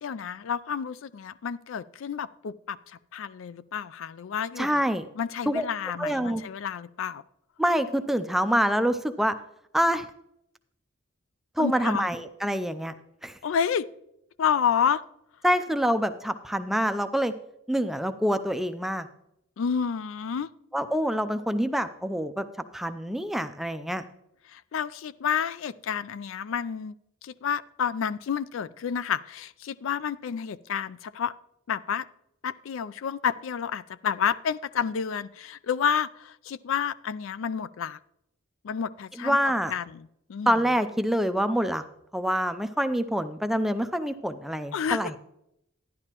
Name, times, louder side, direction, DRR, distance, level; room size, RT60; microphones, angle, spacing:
voice 1, 0.0-2.8 3.1-4.8 5.2-7.2 11.6-12.1 13.4-13.9 14.4-15.0 19.6-20.5 24.5-26.9 27.2-31.3 31.7-32.0 32.4-38.0 38.6-39.4 39.7-40.5 44.7-45.2, left 7 dB, 70° left, 16 dB, 0.4 m, -30 dB
voice 2, 4.6-5.0 5.5-5.6 6.0-6.4 7.6-9.4 9.7-10.1 11.6-12.9 13.2-13.4 15.4-17.3 17.7-19.1 20.7-22.5 22.7-24.0 39.2-39.7 40.5-41.8 42.1-45.2, equal, ahead, 9 dB, 0.4 m, -26 dB
12.0 x 10.5 x 2.9 m, 0.79 s
head